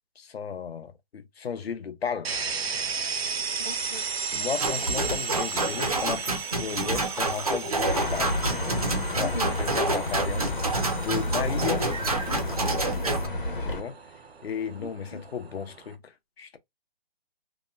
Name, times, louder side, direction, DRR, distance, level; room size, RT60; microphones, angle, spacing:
voice 1, 0.2-2.3 4.3-8.4 9.2-10.5 11.0-11.9 13.6-14.0 14.4-16.1 16.4-16.6, left 7 dB, 85° left, 0.8 m, -34 dB
sound 1, 2.2-15.9, right 5 dB, 90° right, 0.8 m, -35 dB
voice 2, 3.6-4.0 9.2-9.5 12.9-13.2 14.8-15.2, left 2 dB, 25° left, 0.6 m, -39 dB
sound 2, 4.6-13.3, right 2 dB, 40° right, 0.4 m, -28 dB
sound 3, 7.8-13.8, left 1 dB, 60° left, 1.0 m, -30 dB
2.8 x 2.0 x 2.5 m
hypercardioid pair, 175°, 30 cm